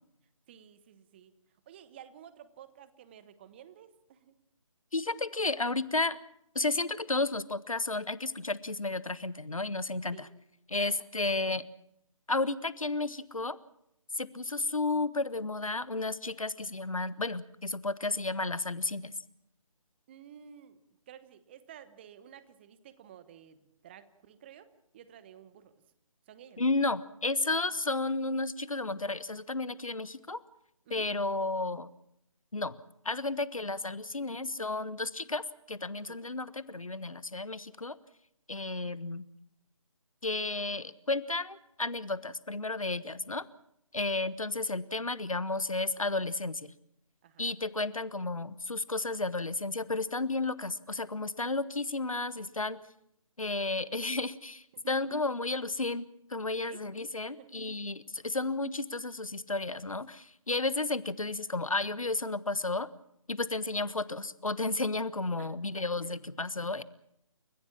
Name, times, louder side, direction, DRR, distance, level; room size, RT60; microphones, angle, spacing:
voice 1, 0.5-1.3 1.7-4.3 10.1-10.3 10.7-10.9 20.1-20.8 21.1-25.7 26.3-26.7 27.6-27.7 30.9-31.1 36.1-36.3 47.2-47.6 54.7-54.9 56.6-56.8 57.3-57.5 63.8-63.9 65.4-65.5 65.7-65.8, right 9 dB, 20° right, 14 dB, 1.1 m, -53 dB
voice 2, 4.9-6.2 6.5-10.3 10.7-11.7 12.3-13.6 14.1-19.1 26.6-30.4 30.9-31.9 32.5-32.8 33.0-38.0 38.5-39.2 40.2-43.5 43.9-46.7 47.4-52.8 53.4-62.9 63.3-66.8, left 3 dB, 75° left, 17 dB, 1.3 m, -32 dB
29.5 x 15.0 x 7.1 m, 0.78 s
figure-of-eight pair, 150°, 18 cm